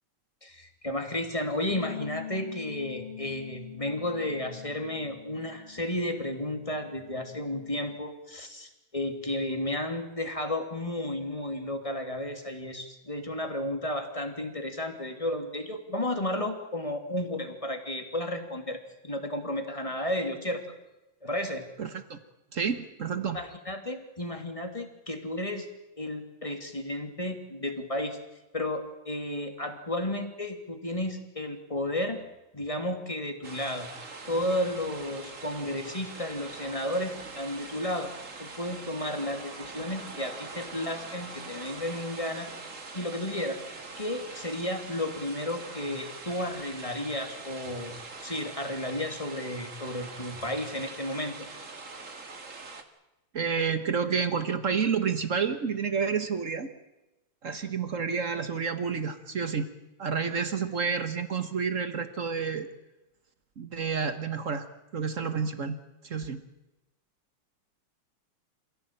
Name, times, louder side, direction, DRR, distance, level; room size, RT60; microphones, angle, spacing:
voice 1, 0.4-18.8 19.0-20.6 21.2-21.6 23.3-25.7 26.0-28.2 28.5-32.2 32.5-33.9 34.3-38.1 38.4-42.5 42.9-43.6 44.0-51.5, left 1 dB, 10° left, 5 dB, 2.6 m, -33 dB
sound 1, 1.7-8.0, left 9 dB, 85° left, 3.3 m, -44 dB
voice 2, 21.8-22.2 22.5-23.4 53.3-56.7 57.4-59.7 60.0-62.7 63.6-64.7 64.9-65.8 66.0-66.4, right 6 dB, 70° right, 10 dB, 0.7 m, -29 dB
sound 2, 33.4-52.8, right 3 dB, 30° right, 1.9 m, -43 dB
27.5 x 17.0 x 9.0 m, 0.98 s
omnidirectional pair, 3.5 m